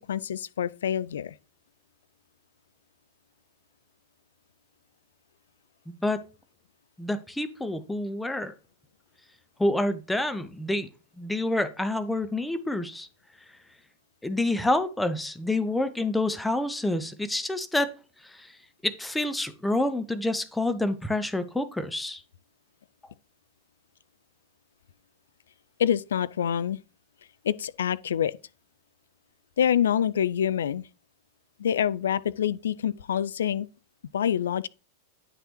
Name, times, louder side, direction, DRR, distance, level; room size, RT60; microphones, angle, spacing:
voice 1, 0.0-1.3 25.8-26.8 27.4-28.3 29.6-30.9 31.6-33.7 34.1-34.7, left 9 dB, 65° left, 0.4 m, -26 dB
voice 2, 5.9-6.2 7.0-8.5 9.6-10.9 11.2-13.1 14.2-17.9 18.2-18.5 18.8-22.2, left 1 dB, 5° left, 0.7 m, -28 dB
9.7 x 5.9 x 3.1 m
figure-of-eight pair, 90°, 0 cm